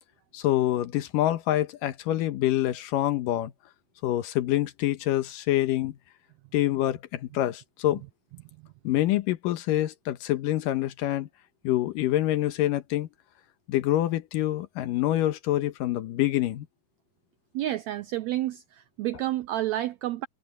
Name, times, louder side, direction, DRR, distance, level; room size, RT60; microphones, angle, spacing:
voice 1, 0.3-3.5 4.0-6.0 6.5-8.0 8.8-11.3 11.6-13.1 13.7-16.7, left 14 dB, 85° left, 2.7 m, -26 dB
voice 2, 17.5-20.3, right 14 dB, 85° right, 1.5 m, -30 dB
omnidirectional pair, 3.8 m